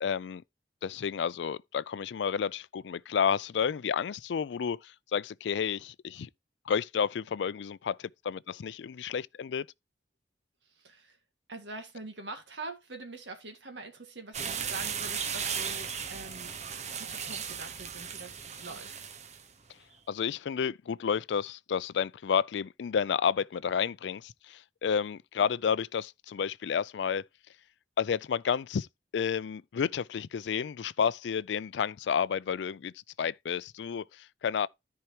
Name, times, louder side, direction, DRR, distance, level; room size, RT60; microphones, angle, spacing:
voice 1, 0.0-0.4 0.8-6.3 6.7-9.7 20.1-27.2 28.0-28.9 29.1-32.9 33.2-34.7, left 7 dB, 80° left, 0.4 m, -31 dB
voice 2, 10.6-11.2 11.5-16.5 17.0-19.0, right 2 dB, 85° right, 1.9 m, -44 dB
sound 1, 14.3-19.4, right 7 dB, 40° right, 0.9 m, -36 dB
14.0 x 4.7 x 2.9 m
head